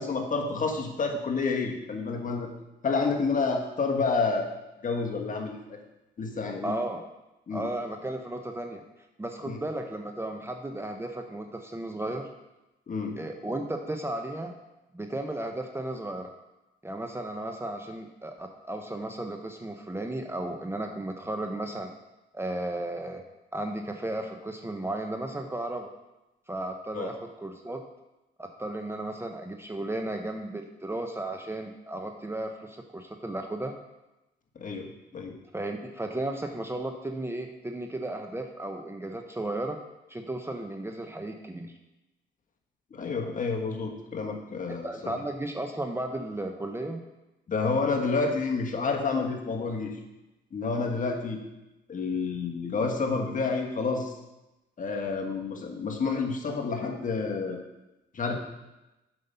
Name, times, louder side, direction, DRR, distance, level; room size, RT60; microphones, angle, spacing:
voice 1, 0.0-2.5 2.8-4.5 4.8-5.8 6.2-6.8 7.5-7.7 9.4-9.6 12.9-13.2 26.9-27.1 34.5-35.4 42.9-45.1 47.5-50.0 50.5-51.4 51.9-54.1 54.8-57.6 58.1-58.4, left 4 dB, 40° left, 2 dB, 1.4 m, -29 dB
voice 2, 6.6-7.0 7.5-8.8 9.2-12.3 13.2-14.5 14.9-16.3 16.8-21.9 22.3-23.2 23.5-25.9 26.5-27.8 28.4-33.7 35.5-39.8 40.1-41.7 44.7-47.0, right 1 dB, 10° right, 4 dB, 0.7 m, -34 dB
7.8 x 5.2 x 5.5 m, 0.98 s
cardioid pair, 90°, 20 cm